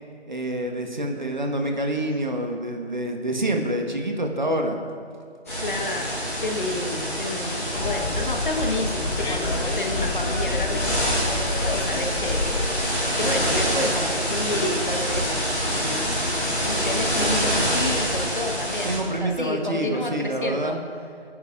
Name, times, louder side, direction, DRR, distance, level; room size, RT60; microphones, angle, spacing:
voice 1, 0.3-4.8 18.8-20.8, right 1 dB, 45° right, 3 dB, 1.2 m, -27 dB
sound 1, 5.4-19.0, equal, 15° left, 3.3 m, -26 dB
voice 2, 5.6-11.1 11.7-12.7 13.2-20.7, left 2 dB, 45° left, 2 dB, 1.2 m, -30 dB
Bus, 7.7-12.8, left 3 dB, 80° left, 1.0 m, -28 dB
27.5 x 9.8 x 2.4 m, 2.3 s
figure-of-eight pair, 180°, 34 cm